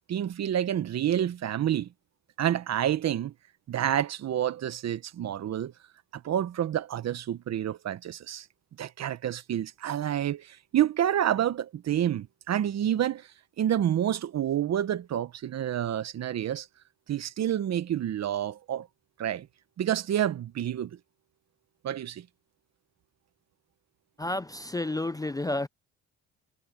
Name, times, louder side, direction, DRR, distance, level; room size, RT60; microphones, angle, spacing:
voice 1, 0.1-1.9 2.4-3.3 3.7-5.7 6.1-8.5 8.8-13.3 13.6-16.7 17.1-18.9 19.2-19.5 19.8-20.9 21.8-22.3, right 10 dB, 60° right, 1.1 m, -28 dB
voice 2, 24.2-25.7, left 2 dB, 10° left, 0.5 m, -31 dB
cardioid pair, 90°, 30 cm